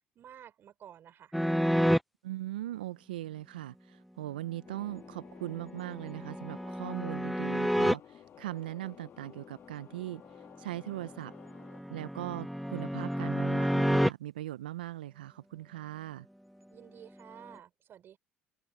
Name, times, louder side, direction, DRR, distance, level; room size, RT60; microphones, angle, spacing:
voice 1, 0.1-1.3 16.7-18.2, right 10 dB, 50° right, 4.7 m, -52 dB
sound 1, 1.3-2.0 5.4-7.9 11.0-14.1, equal, ahead, 0.6 m, -29 dB
voice 2, 2.2-10.2 10.6-11.3 11.9-16.3, right 15 dB, 85° right, 0.6 m, -40 dB
sound 2, 4.6-11.8, left 9 dB, 50° left, 1.7 m, -53 dB
open air
hypercardioid pair, 65°, 5 cm